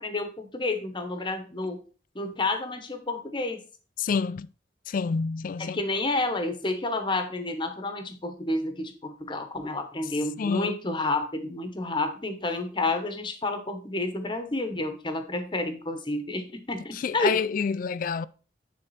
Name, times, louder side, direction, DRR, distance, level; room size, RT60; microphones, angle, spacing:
voice 1, 0.0-1.8 2.1-3.6 5.6-17.4, left 2 dB, 25° left, 0.9 m, -30 dB
voice 2, 4.0-4.5 4.9-5.8 10.4-10.7 16.9-18.3, left 5 dB, 50° left, 0.3 m, -28 dB
9.9 x 3.6 x 4.1 m
head